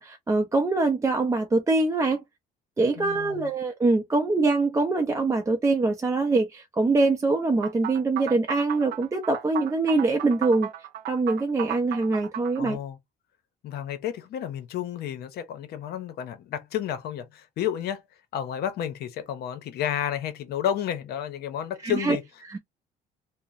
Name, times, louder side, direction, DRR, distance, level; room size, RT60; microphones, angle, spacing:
voice 1, 0.0-2.2 2.8-10.7 11.1-12.8 21.8-22.2 22.5-22.6, right 3 dB, 20° right, 0.5 m, -24 dB
voice 2, 3.0-3.5 12.6-13.0 13.6-18.0 18.3-22.2, left 10 dB, 70° left, 0.7 m, -31 dB
sound 1, 7.6-12.8, right 11 dB, 70° right, 0.4 m, -35 dB
2.8 x 2.0 x 2.5 m
cardioid pair, 110°, 17 cm